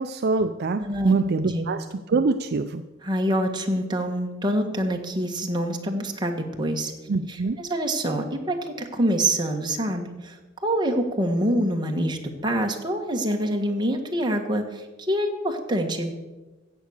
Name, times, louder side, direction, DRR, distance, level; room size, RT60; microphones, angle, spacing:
voice 1, 0.0-2.8 7.1-7.6, right 3 dB, 55° right, 9 dB, 0.5 m, -24 dB
voice 2, 0.8-1.1 1.4-1.6 3.0-6.9 7.3-16.1, right 1 dB, 20° right, 2 dB, 1.5 m, -26 dB
15.0 x 8.3 x 6.5 m, 1.2 s
head